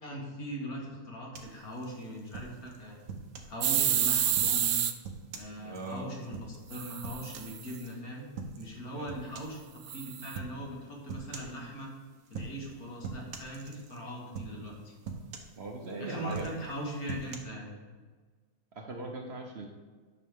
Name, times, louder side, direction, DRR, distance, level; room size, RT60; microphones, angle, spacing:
voice 1, 0.0-3.0 3.5-4.7 5.4-8.3 8.6-11.9 12.3-14.9 16.0-17.7, equal, 70° left, -2 dB, 2.1 m, -40 dB
sound 1, 1.3-3.6 4.1-7.9 8.4-8.8 9.1-9.6 10.3-10.6 11.1-11.6 12.3-12.7 13.0-14.0 14.3-14.7 15.0-15.9 16.3-17.4, right 5 dB, 65° right, 1.3 m, -43 dB
sound 2, 3.6-4.9 6.7-7.7 9.9-10.4, right 10 dB, 90° right, 0.5 m, -29 dB
voice 2, 5.5-6.1 8.9-9.2 15.6-16.5 18.7-19.7, right 2 dB, 50° right, 1 dB, 1.0 m, -40 dB
9.5 x 6.2 x 3.6 m, 1.5 s
omnidirectional pair, 1.6 m